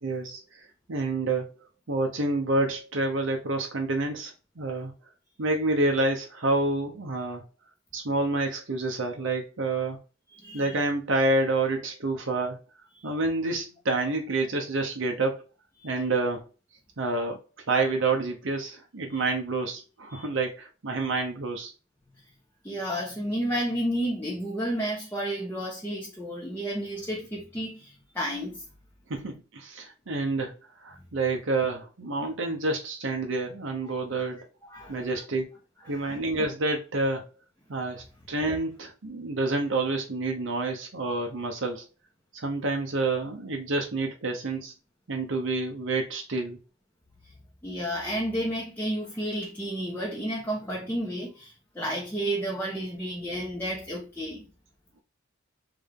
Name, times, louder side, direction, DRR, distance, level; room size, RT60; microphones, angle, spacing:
voice 1, 0.0-1.5 1.9-4.9 5.4-7.4 7.9-10.0 10.5-12.6 13.0-15.4 15.8-16.4 17.0-17.4 17.7-21.7 29.1-30.5 30.8-34.4 34.9-35.5 35.9-37.3 37.7-41.8 42.3-44.7 45.1-46.6, right 2 dB, 60° right, 0.8 m, -28 dB
voice 2, 10.3-10.8 12.9-13.1 15.8-15.9 19.1-19.2 20.1-20.3 22.6-28.6 34.2-34.3 34.6-35.2 35.8-36.2 47.6-54.5, equal, 10° left, 0.9 m, -32 dB
3.6 x 3.3 x 3.6 m
head